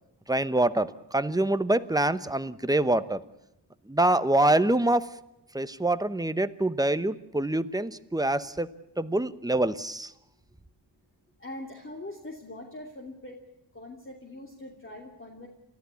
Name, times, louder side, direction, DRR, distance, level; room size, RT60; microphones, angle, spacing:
voice 1, 0.3-3.2 3.9-5.1 5.5-8.7 9.0-10.1, right 1 dB, 10° right, 13 dB, 0.9 m, -25 dB
voice 2, 11.4-13.4 13.7-15.5, left 1 dB, 30° left, 1 dB, 2.9 m, -42 dB
29.5 x 14.0 x 8.4 m, 0.86 s
wide cardioid pair, 110°, 43 cm